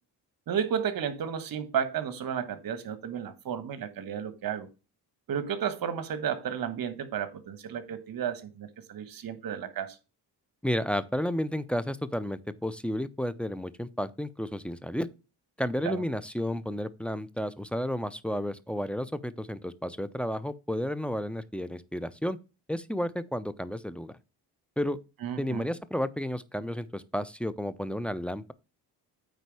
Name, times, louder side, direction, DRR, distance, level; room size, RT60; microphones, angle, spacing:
voice 1, 0.5-4.7 5.3-10.0 15.8-16.0 25.2-25.7, right 8 dB, 60° right, 1.4 m, -33 dB
voice 2, 10.6-15.1 15.6-22.4 22.7-24.1 24.8-25.0 25.4-28.5, equal, 5° left, 0.6 m, -32 dB
9.1 x 4.0 x 4.8 m
cardioid pair, 90°, 40 cm